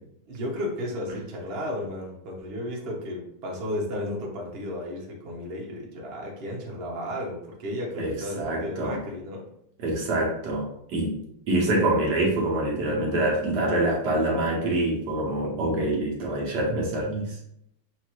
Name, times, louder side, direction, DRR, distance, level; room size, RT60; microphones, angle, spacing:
voice 1, 0.3-9.5, left 1 dB, 45° right, -2 dB, 0.8 m, -33 dB
voice 2, 8.0-9.0 9.8-11.2 11.5-17.4, right 1 dB, 60° right, -2 dB, 1.3 m, -25 dB
5.9 x 2.5 x 3.0 m, 0.74 s
omnidirectional pair, 2.3 m